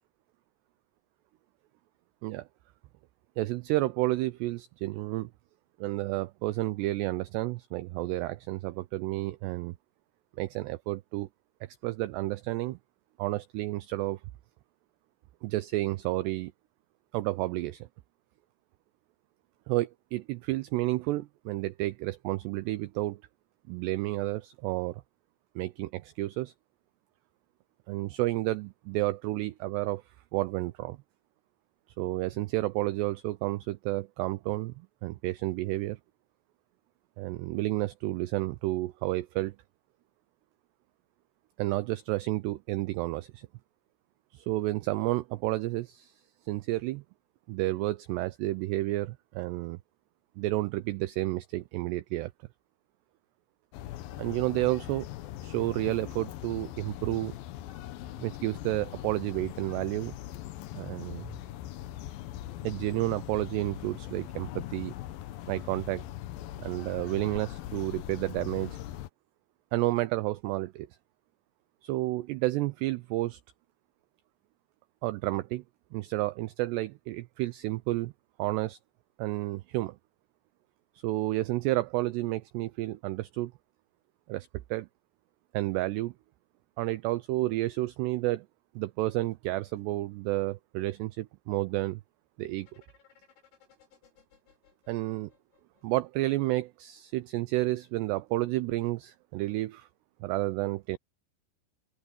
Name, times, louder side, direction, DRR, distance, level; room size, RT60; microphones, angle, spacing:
voice 1, 3.4-5.3 5.8-9.8 10.4-11.3 11.8-12.8 13.2-14.2 15.4-16.5 17.1-17.9 19.7-23.2 23.7-25.0 25.6-26.5 27.9-30.0 30.3-31.0 32.0-36.0 37.2-39.6 41.6-43.5 44.3-47.0 47.5-49.8 50.4-52.3 54.2-55.1 55.4-57.3 58.2-60.1 60.8-61.3 62.6-64.9 65.5-66.0 66.6-68.8 69.7-70.9 71.8-73.4 75.0-75.6 75.9-78.1 78.4-78.8 79.2-80.0 81.0-83.5 84.3-84.9 85.5-86.1 86.8-88.5 88.8-92.0 92.4-92.7 94.9-95.3 95.8-99.9 100.2-101.0, right 18 dB, 85° right, 2.4 m, -31 dB
sound 1, 53.7-69.1, left 13 dB, 90° left, 2.0 m, -41 dB
sound 2, 92.6-96.5, left 8 dB, 70° left, 7.5 m, -63 dB
open air
omnidirectional pair, 5.5 m